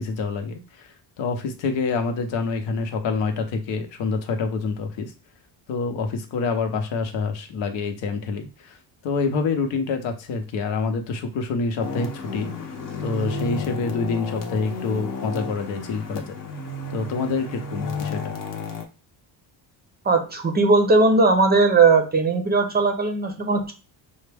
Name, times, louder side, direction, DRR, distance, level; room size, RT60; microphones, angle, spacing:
voice 1, 0.0-5.1 5.7-8.8 9.0-12.5 13.0-16.4 16.9-18.3, left 4 dB, 80° left, 5 dB, 0.9 m, -27 dB
sound 1, 11.8-18.8, left 3 dB, 45° left, 0.8 m, -32 dB
voice 2, 20.0-23.7, right 3 dB, 20° right, 5 dB, 0.5 m, -18 dB
5.5 x 2.2 x 3.4 m, 0.33 s
cardioid pair, 140°, 45 cm